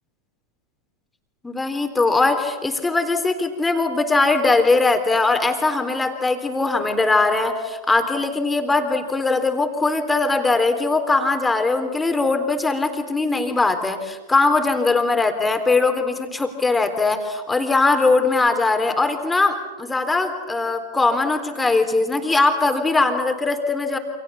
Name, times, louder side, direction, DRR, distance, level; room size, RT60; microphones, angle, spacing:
voice 1, 1.4-24.0, left 3 dB, 10° left, 7 dB, 3.8 m, -20 dB
29.0 x 28.0 x 7.1 m, 1.2 s
figure-of-eight pair, 90°, 0 cm